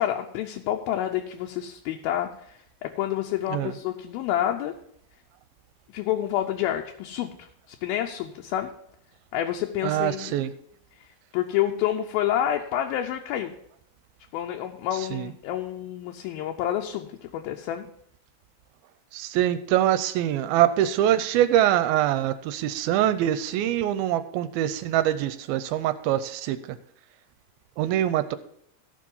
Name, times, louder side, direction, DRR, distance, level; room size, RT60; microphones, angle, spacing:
voice 1, 0.0-4.7 5.9-8.7 9.3-10.4 11.0-13.5 14.3-17.9, left 11 dB, 80° left, 3 dB, 2.4 m, -28 dB
voice 2, 9.8-10.5 15.1-15.3 19.1-26.6 27.8-28.4, right 12 dB, 80° right, 12 dB, 2.3 m, -24 dB
14.5 x 5.1 x 5.4 m, 0.70 s
omnidirectional pair, 4.4 m